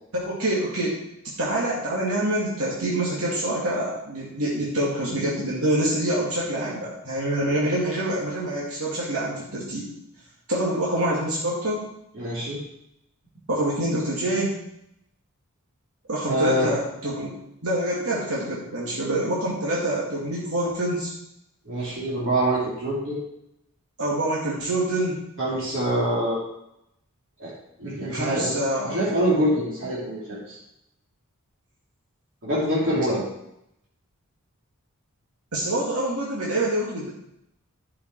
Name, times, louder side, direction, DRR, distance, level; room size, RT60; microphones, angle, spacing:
voice 1, 0.1-1.0 1.4-9.9 10.5-11.9 13.5-14.6 16.1-21.1 24.0-25.2 28.1-29.0 35.5-37.1, right 1 dB, 85° right, -6 dB, 2.3 m, -26 dB
voice 2, 12.1-12.6 16.2-16.7 21.6-23.2 25.4-26.4 27.4-27.5 27.8-30.6 32.4-33.2, right 1 dB, 60° right, -8 dB, 3.0 m, -25 dB
12.0 x 5.7 x 4.7 m, 0.81 s
head